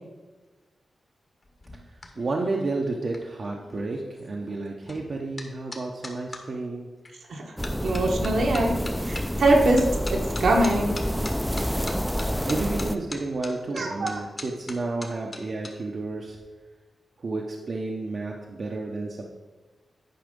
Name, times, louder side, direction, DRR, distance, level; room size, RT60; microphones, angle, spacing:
sound 1, 1.4-6.4 7.0-7.3 7.6-15.7 16.0-16.4, left 2 dB, 45° left, 1.4 m, -41 dB
voice 1, 1.7-6.9 11.7-12.0 12.4-16.4 17.2-19.2, right 3 dB, 60° right, 0 dB, 0.8 m, -31 dB
sound 2, 7.6-13.0, equal, ahead, 0.5 m, -28 dB
voice 2, 7.8-8.8 9.1-9.8 10.1-11.0 13.7-14.1, right 2 dB, 80° right, 0 dB, 1.4 m, -22 dB
9.5 x 5.0 x 5.2 m, 1.3 s
cardioid pair, 60°, 0 cm